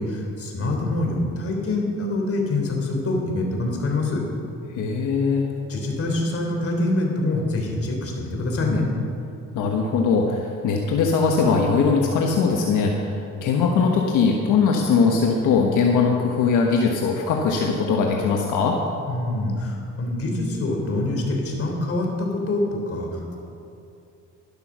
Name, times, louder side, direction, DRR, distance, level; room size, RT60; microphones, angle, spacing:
voice 1, 0.0-4.2 5.7-8.9 19.1-23.4, left 2 dB, 50° left, 1 dB, 3.5 m, -25 dB
voice 2, 4.7-5.5 9.5-18.8, left 5 dB, 85° left, 1 dB, 1.4 m, -20 dB
12.5 x 12.0 x 6.2 m, 2.6 s
cardioid pair, 90°, 30 cm